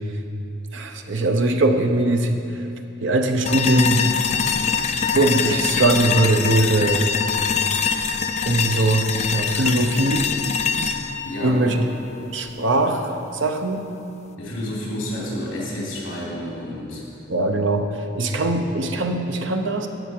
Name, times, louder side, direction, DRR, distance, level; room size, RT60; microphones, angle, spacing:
voice 1, 0.7-2.7 3.0-4.1 5.1-7.1 8.4-10.3 11.4-11.9 12.3-13.9 17.3-19.9, right 2 dB, 65° right, 5 dB, 0.8 m, -21 dB
sound 1, 3.4-12.5, left 6 dB, 35° left, 0.4 m, -24 dB
voice 2, 11.2-11.7 14.4-17.0, left 1 dB, 70° left, -5 dB, 2.8 m, -30 dB
12.0 x 8.1 x 4.6 m, 2.8 s
head